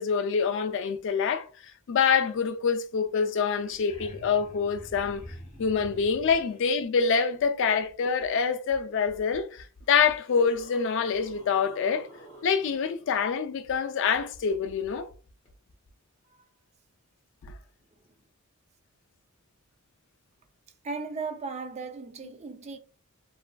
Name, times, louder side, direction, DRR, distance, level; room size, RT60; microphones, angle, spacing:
voice 1, 0.0-1.5 1.9-5.2 5.6-12.1 12.4-15.1, left 6 dB, 60° left, 0.4 m, -26 dB
sound 1, 3.5-6.6 9.1-9.2 9.8-12.9 15.5-15.6, equal, 30° left, 1.1 m, -47 dB
voice 2, 20.8-22.8, right 4 dB, 30° right, 0.4 m, -36 dB
3.0 x 2.5 x 2.2 m
head